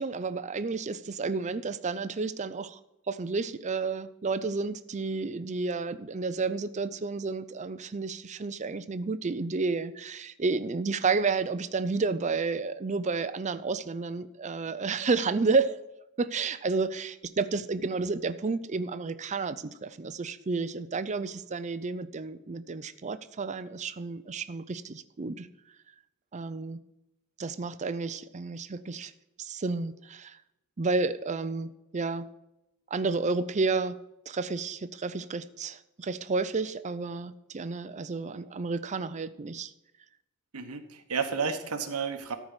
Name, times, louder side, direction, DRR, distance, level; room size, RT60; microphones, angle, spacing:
voice 1, 0.0-2.8 3.1-15.8 16.2-25.5 26.3-26.8 27.4-29.1 29.4-30.4 30.8-32.3 32.9-34.0 34.3-39.7, right 4 dB, 30° right, 13 dB, 0.5 m, -31 dB
voice 2, 40.5-42.4, right 5 dB, 85° right, 7 dB, 1.1 m, -31 dB
13.5 x 4.7 x 7.3 m, 0.90 s
head